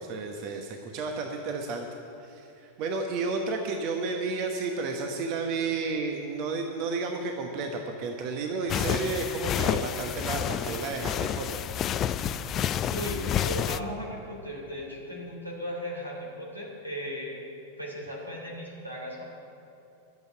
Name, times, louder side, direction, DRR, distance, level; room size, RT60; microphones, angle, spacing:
voice 1, 0.0-1.9 2.2-11.6, right 3 dB, 40° right, 3 dB, 1.1 m, -32 dB
sound 1, 8.7-13.8, left 9 dB, 30° left, 0.4 m, -29 dB
voice 2, 12.9-17.4 17.8-19.2, equal, 90° right, -2 dB, 3.2 m, -36 dB
12.0 x 7.2 x 9.6 m, 2.8 s
figure-of-eight pair, 90°, 0 cm